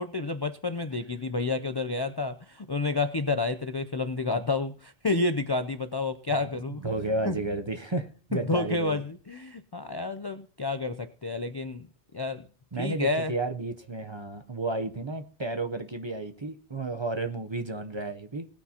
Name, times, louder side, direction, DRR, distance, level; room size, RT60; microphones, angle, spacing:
voice 1, 0.0-6.8 7.3-7.4 8.3-11.9 12.1-12.5 12.8-13.3, left 3 dB, 40° left, 10 dB, 0.3 m, -30 dB
voice 2, 6.8-9.0 12.7-18.5, right 2 dB, 30° right, 7 dB, 0.7 m, -32 dB
19.0 x 9.6 x 2.8 m, 0.40 s
omnidirectional pair, 1.2 m